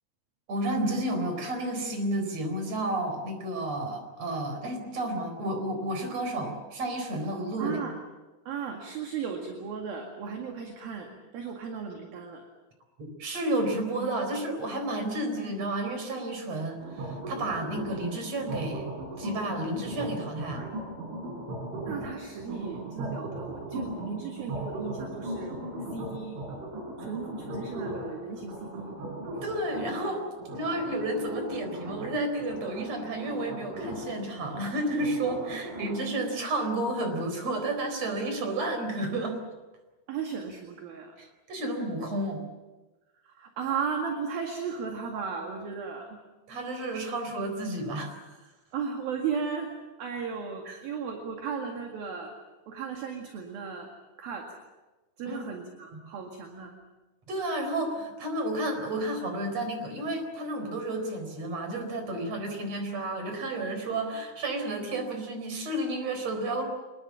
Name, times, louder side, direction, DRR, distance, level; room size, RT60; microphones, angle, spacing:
voice 1, 0.5-7.8 13.0-18.9 19.2-20.7 29.3-30.2 30.5-39.4 41.2-42.4 46.5-48.3 50.7-50.8 55.2-55.4 57.3-66.6, right 1 dB, 35° right, 6 dB, 4.9 m, -31 dB
voice 2, 7.6-8.0 8.5-12.4 20.5-20.7 21.8-25.5 25.9-26.5 27.0-29.0 35.4-35.6 40.1-41.2 43.2-46.2 48.7-49.7 50.0-52.3 52.7-53.9 54.2-54.6 55.2-56.7, right 6 dB, 55° right, 3 dB, 3.5 m, -35 dB
sound 1, 16.8-36.0, right 1 dB, 75° right, 7.7 m, -38 dB
25.0 x 22.0 x 7.3 m, 1.1 s
omnidirectional pair, 5.6 m